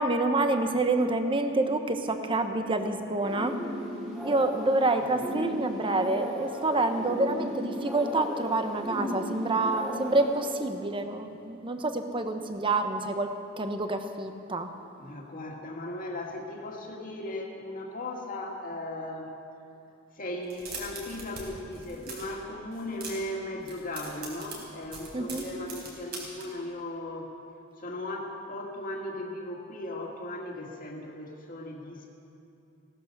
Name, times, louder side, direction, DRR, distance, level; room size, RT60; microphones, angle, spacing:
voice 1, 0.0-3.6 4.2-13.3 13.6-14.7 25.1-25.4, right 2 dB, 25° right, 7 dB, 1.0 m, -27 dB
sound 1, 3.2-10.6, equal, ahead, 2.7 m, -36 dB
voice 2, 15.0-19.3 20.1-27.3 27.8-32.2, left 1 dB, 45° left, 0 dB, 2.1 m, -37 dB
sound 2, 20.4-21.4 21.7-22.3 22.7-23.3 23.6-26.4, right 3 dB, 50° right, 4.3 m, -41 dB
17.5 x 12.0 x 6.8 m, 2.7 s
head